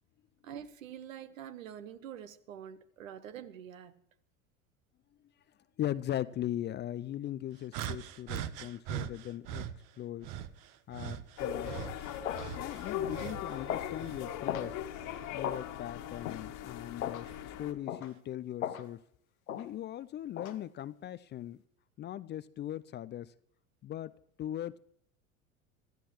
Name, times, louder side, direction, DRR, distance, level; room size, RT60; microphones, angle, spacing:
voice 1, 0.4-3.9, right 9 dB, 70° right, 1.4 m, -46 dB
voice 2, 5.8-9.7 10.0-10.3 10.9-11.7 12.6-14.8 15.3-19.0 19.6-21.6 22.0-23.3 23.8-24.1 24.4-24.8, left 12 dB, 25° left, 0.5 m, -39 dB
sound 1, 7.7-9.7 10.2-13.5 13.9-15.4 16.1-16.3 17.2-17.4, right 11 dB, 50° right, 1.2 m, -41 dB
sound 2, 11.4-17.7, left 9 dB, 45° left, 1.8 m, -40 dB
sound 3, 11.5-11.7 12.2-12.5 13.0-13.2 13.7-13.9 14.5-14.7 15.4-15.6 16.2-16.4 17.0-17.3 17.9-18.1 18.6-18.9 19.5-19.7 20.4-20.6, left 10 dB, 75° left, 1.3 m, -37 dB
26.0 x 14.0 x 3.1 m
figure-of-eight pair, 75°, 42 cm